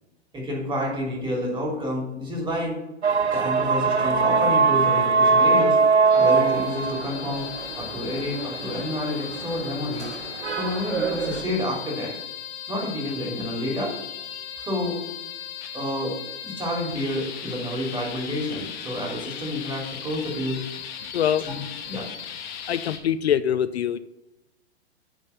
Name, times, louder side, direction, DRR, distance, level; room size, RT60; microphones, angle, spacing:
voice 1, 0.3-2.8 3.3-5.8 6.1-7.5 7.8-10.1 10.6-12.1 12.7-15.0 15.7-16.2 16.4-20.6 21.4-21.6 21.9-22.1, left 1 dB, 15° right, -1 dB, 2.8 m, -29 dB
sound 1, 3.0-11.4, right 4 dB, 85° right, 0.9 m, -22 dB
sound 2, 6.1-23.0, left 9 dB, 45° left, 1.3 m, -37 dB
voice 2, 21.1-21.5 22.7-24.0, left 9 dB, 70° left, 14 dB, 0.5 m, -23 dB
9.0 x 4.2 x 7.0 m, 0.95 s
figure-of-eight pair, 115°, 33 cm